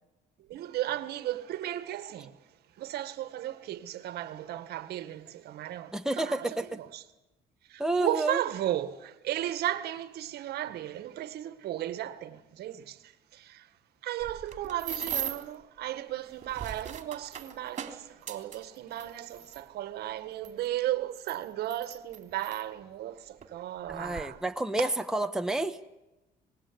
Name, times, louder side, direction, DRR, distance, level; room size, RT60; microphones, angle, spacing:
voice 1, 0.4-2.4 2.8-6.5 6.8-7.0 7.7-13.7 14.0-24.4 24.8-24.9, right 13 dB, 70° right, 1.8 m, -35 dB
voice 2, 5.9-6.8 7.8-8.4 23.9-25.8, right 2 dB, 5° right, 1.2 m, -30 dB
sound 1, 14.2-15.5 16.3-19.6 20.4-20.5 21.1-22.6 23.4-23.5 23.9-24.2, right 8 dB, 45° right, 3.2 m, -39 dB
25.5 x 20.5 x 9.9 m
cardioid pair, 110°, 17 cm